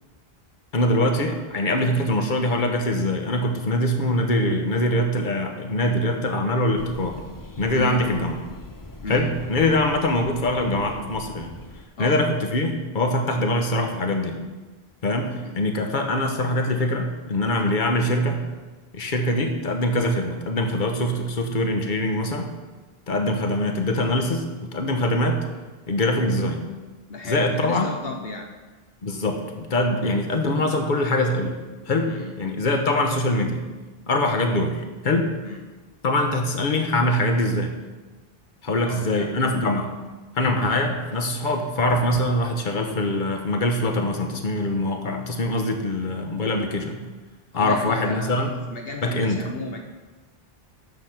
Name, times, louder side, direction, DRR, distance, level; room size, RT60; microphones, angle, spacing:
voice 1, 0.7-7.2 7.6-8.4 9.1-11.5 12.0-14.4 15.0-18.4 18.9-22.5 23.1-25.4 25.9-26.6 27.2-27.9 29.0-31.6 31.9-33.6 34.1-35.3 36.0-37.7 38.6-39.9 40.3-47.0 47.5-48.5 49.0-49.4, left 1 dB, 55° left, 4 dB, 1.3 m, -23 dB
sound 1, 6.8-11.9, left 1 dB, 25° left, 0.5 m, -42 dB
voice 2, 27.1-28.5 30.0-30.2 32.1-32.3 35.4-35.6 38.8-39.3 47.5-49.8, left 3 dB, 75° left, 2 dB, 1.1 m, -34 dB
9.7 x 7.2 x 5.9 m, 1.2 s
omnidirectional pair, 1.0 m